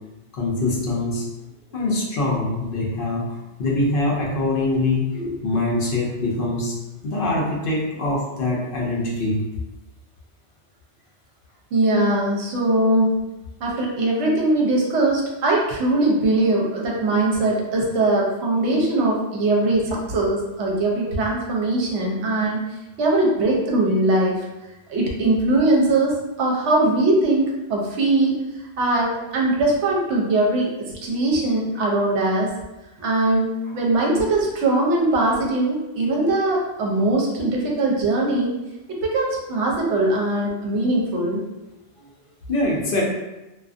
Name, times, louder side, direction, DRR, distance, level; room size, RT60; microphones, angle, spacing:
voice 1, 0.3-1.3 1.7-5.1 5.4-6.8 7.0-9.4 42.5-43.0, left 2 dB, 60° left, -2 dB, 0.6 m, -23 dB
voice 2, 11.7-13.2 13.6-22.6 23.0-24.4 24.9-28.4 28.8-32.5 33.0-38.6 38.9-41.4, right 2 dB, 70° right, -2 dB, 0.9 m, -21 dB
2.4 x 2.3 x 2.4 m, 1.0 s
omnidirectional pair, 1.3 m